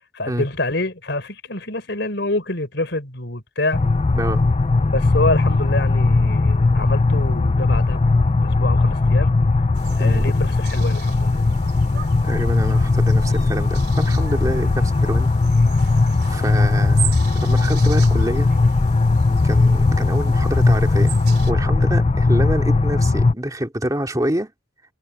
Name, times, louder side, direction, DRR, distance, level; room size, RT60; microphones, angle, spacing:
voice 1, 0.1-3.8 4.9-8.0 8.4-9.3 10.0-11.4, left 2 dB, 65° left, 4.2 m, -26 dB
sound 1, 3.7-23.3, left 3 dB, 30° left, 0.4 m, -18 dB
sound 2, 9.7-21.5, right 11 dB, 55° right, 3.8 m, -38 dB
voice 2, 10.0-10.3 12.2-15.3 16.3-18.5 19.4-21.2 21.5-24.5, equal, 20° right, 3.3 m, -26 dB
head